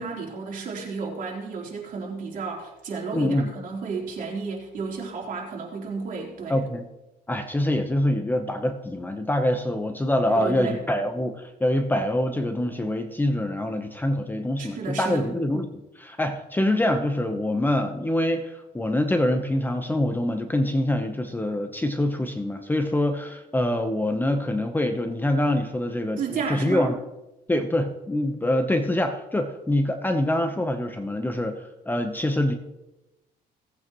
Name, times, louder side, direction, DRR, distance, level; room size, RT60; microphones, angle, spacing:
voice 1, 0.0-6.6 10.3-10.8 14.6-15.2 26.2-26.9, right 4 dB, 55° right, -2 dB, 3.7 m, -32 dB
voice 2, 3.1-3.5 6.5-6.8 7.3-27.0 27.5-32.6, left 1 dB, 10° left, 6 dB, 0.9 m, -25 dB
18.0 x 8.5 x 3.1 m, 0.97 s
cardioid pair, 110°, 17 cm